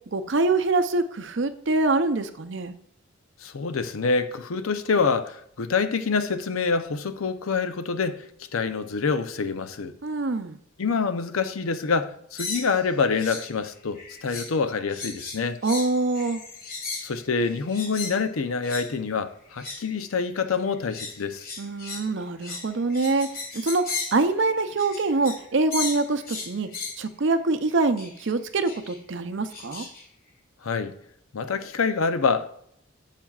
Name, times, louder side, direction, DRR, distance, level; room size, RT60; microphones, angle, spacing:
voice 1, 0.1-2.8 10.0-10.6 15.6-16.4 21.6-23.3 23.5-26.7 27.0-29.8, right 3 dB, 60° right, 0.6 m, -25 dB
voice 2, 3.4-8.3 8.5-9.9 10.8-15.6 17.0-21.5 30.6-30.9 31.3-32.5, left 5 dB, 90° left, 0.6 m, -26 dB
sound 1, 12.4-13.5 13.8-14.6 14.9-18.2 18.6-18.9 19.5-19.9 20.5-25.5 25.7-27.0 28.0-28.3 28.7-29.0 29.5-30.0, left 4 dB, 45° left, 1.9 m, -36 dB
12.0 x 7.4 x 2.4 m
head